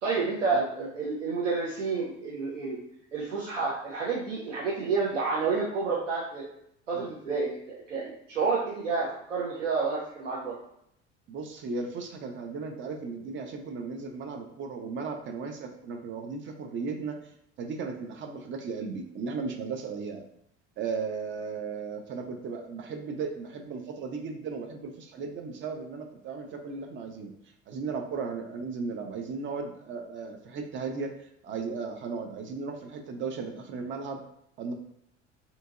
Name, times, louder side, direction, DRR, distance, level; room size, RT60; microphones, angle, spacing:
voice 1, 0.0-2.8 3.1-6.4 6.9-7.6 7.9-10.6, right 4 dB, 85° right, -5 dB, 0.6 m, -29 dB
voice 2, 0.5-0.9 6.9-7.1 11.3-17.3 17.6-20.2 20.8-27.3 27.7-31.2 31.4-34.2 34.6-34.7, right 4 dB, 35° right, 4 dB, 0.5 m, -36 dB
2.7 x 2.6 x 2.4 m, 0.73 s
figure-of-eight pair, 65°, 35 cm